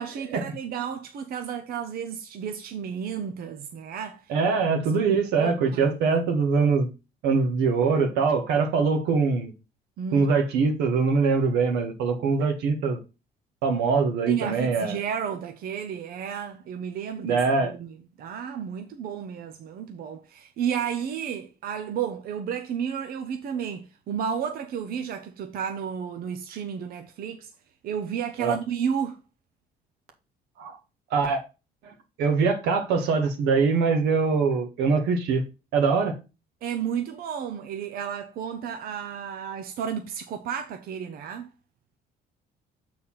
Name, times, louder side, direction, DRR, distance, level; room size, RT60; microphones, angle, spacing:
voice 1, 0.0-4.3 5.4-6.0 10.0-10.3 14.3-27.5 27.8-29.2 36.6-41.5, right 8 dB, 60° right, 0.8 m, -32 dB
voice 2, 4.3-6.9 7.2-9.5 10.1-13.0 13.6-15.0 17.2-17.7 28.4-28.5 30.6-30.8 31.1-31.4 31.8-35.4 35.7-36.2, right 4 dB, 90° right, 1.8 m, -23 dB
6.7 x 4.2 x 5.6 m
cardioid pair, 110°, 17 cm